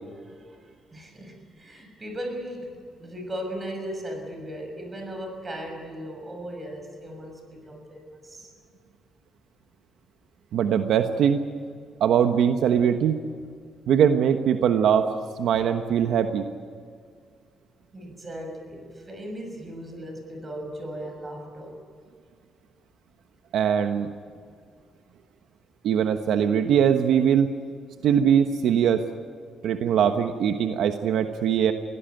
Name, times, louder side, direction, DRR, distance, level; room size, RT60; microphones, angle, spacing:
voice 1, 0.2-8.5 17.9-21.8 24.4-24.5, equal, 25° right, 5 dB, 6.4 m, -37 dB
voice 2, 10.5-11.4 12.0-13.2 13.9-15.0 15.4-16.4 23.5-24.1 25.8-27.5 28.0-29.0 29.6-31.7, right 8 dB, 75° right, 7 dB, 1.2 m, -21 dB
23.0 x 17.0 x 9.2 m, 2.1 s
cardioid pair, 115°, 0 cm